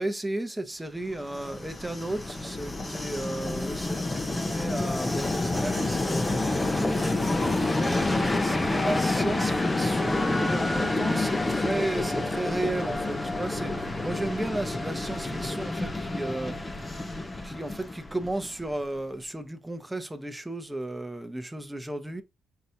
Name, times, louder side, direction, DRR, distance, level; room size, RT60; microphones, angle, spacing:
voice 1, 0.0-7.0 7.8-16.7 17.4-22.2, right 1 dB, 10° right, 0.9 m, -34 dB
Train, 1.1-18.8, left 2 dB, 20° left, 0.7 m, -28 dB
5.7 x 3.1 x 2.7 m
cardioid pair, 90°, 0 cm